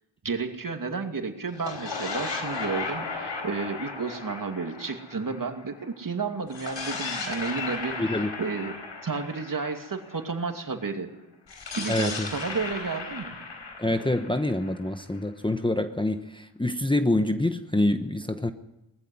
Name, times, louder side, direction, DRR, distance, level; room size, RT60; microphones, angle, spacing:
voice 1, 0.2-8.8 9.0-11.1 11.7-13.4, right 4 dB, 45° right, 5 dB, 2.6 m, -32 dB
sound 1, 1.5-5.9 6.5-10.4 11.5-15.3, left 4 dB, 75° left, 4.5 m, -36 dB
voice 2, 8.0-8.3 11.9-12.3 13.8-18.5, left 1 dB, 10° left, 7 dB, 1.1 m, -26 dB
20.0 x 14.5 x 9.6 m, 0.92 s
cardioid pair, 70°, 44 cm